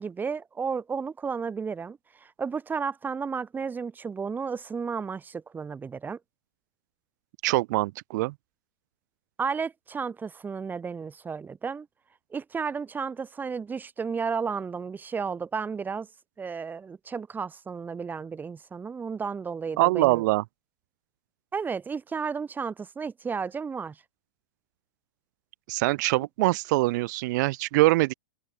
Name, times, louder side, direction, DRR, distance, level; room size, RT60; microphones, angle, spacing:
voice 1, 0.0-6.2 9.4-11.9 12.3-16.1 16.4-20.2 21.5-24.0, right 5 dB, 15° right, 6.0 m, -33 dB
voice 2, 7.4-8.3 19.8-20.4 25.7-28.1, right 20 dB, 50° right, 1.1 m, -23 dB
open air
hypercardioid pair, 120°, 12 cm